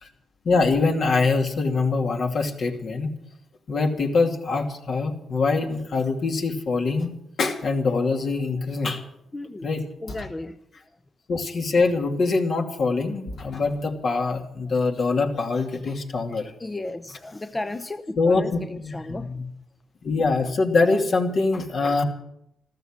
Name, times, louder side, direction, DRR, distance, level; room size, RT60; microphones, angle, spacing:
voice 1, 0.4-3.2 3.7-7.1 7.4-9.0 9.6-9.8 10.1-10.3 11.3-16.5 18.2-19.5 20.0-22.0, left 3 dB, 60° left, 3 dB, 2.5 m, -24 dB
voice 2, 9.3-9.7 10.0-10.6 16.4-19.3, left 2 dB, 20° left, 8 dB, 0.8 m, -34 dB
14.0 x 13.5 x 7.4 m, 0.78 s
cardioid pair, 75°, 0 cm